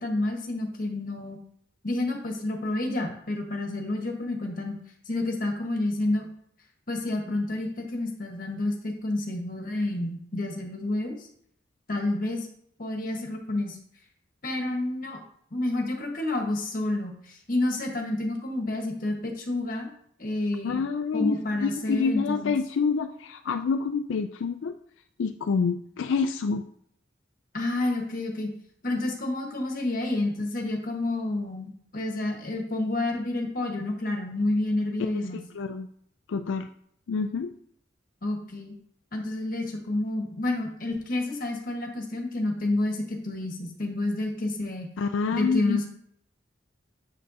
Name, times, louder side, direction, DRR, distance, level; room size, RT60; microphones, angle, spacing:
voice 1, 0.0-1.4 1.8-4.8 5.1-6.3 6.9-11.3 11.9-12.5 12.8-13.8 14.4-15.2 15.5-19.9 20.2-20.8 21.1-22.6 27.5-28.5 28.8-35.4 38.2-38.7 39.1-44.9 45.3-45.9, left 2 dB, 45° left, 2 dB, 1.4 m, -29 dB
voice 2, 20.6-24.7 25.2-26.6 35.0-35.2 35.5-35.9 36.3-36.7 37.1-37.5 45.0-45.8, left 5 dB, 85° left, 8 dB, 0.4 m, -27 dB
7.5 x 6.9 x 2.8 m, 0.66 s
head